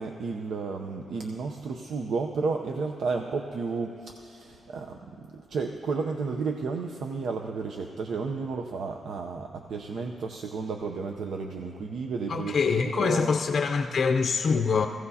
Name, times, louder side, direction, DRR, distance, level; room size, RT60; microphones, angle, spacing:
voice 1, 0.0-13.3, right 4 dB, 70° right, 4 dB, 0.6 m, -32 dB
voice 2, 12.3-14.9, left 5 dB, 45° left, 4 dB, 0.5 m, -24 dB
23.0 x 16.0 x 2.8 m, 2.8 s
wide cardioid pair, 155°, 0 cm